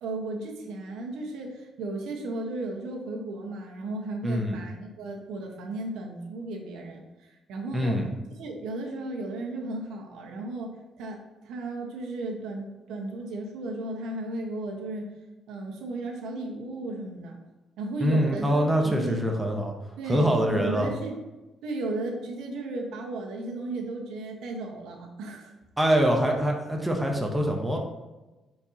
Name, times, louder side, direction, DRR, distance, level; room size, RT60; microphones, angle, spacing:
voice 1, 0.0-8.0 8.4-15.1 15.5-17.4 17.8-19.2 20.0-21.2 21.6-25.5, right 2 dB, 80° right, 1 dB, 1.3 m, -35 dB
voice 2, 4.2-4.6 7.7-8.1 18.0-19.7 20.1-20.9 25.8-27.8, equal, 5° right, 1 dB, 0.9 m, -24 dB
9.4 x 4.6 x 2.9 m, 1.1 s
cardioid pair, 155°, 0 cm